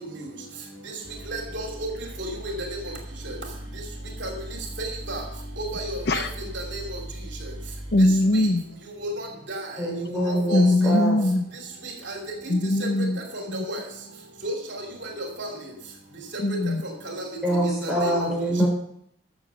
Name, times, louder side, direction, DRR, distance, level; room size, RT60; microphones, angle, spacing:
sound 1, 0.8-0.9 1.0-8.9, right 1 dB, 35° right, 5.4 m, -39 dB
voice 1, 1.3-1.9 2.2-2.8 3.2-3.3 4.2-4.3 4.8-5.2 5.6-6.2 6.5-6.8 9.0-9.6 10.1-10.2 10.5-10.7 12.1-12.2 12.5-12.6 13.5-13.8 14.4-14.5 15.2-15.5 16.5-16.6 17.0-17.2 17.8-18.1, right 1 dB, 65° right, 1 dB, 2.7 m, -32 dB
voice 2, 7.9-8.6 10.5-11.4 12.5-13.2 13.5-13.6 16.4-16.8 18.6-18.7, left 1 dB, 55° left, 10 dB, 0.6 m, -21 dB
voice 3, 9.8-11.2 17.4-18.7, right 1 dB, ahead, -5 dB, 4.9 m, -25 dB
13.5 x 7.1 x 5.5 m, 0.71 s
head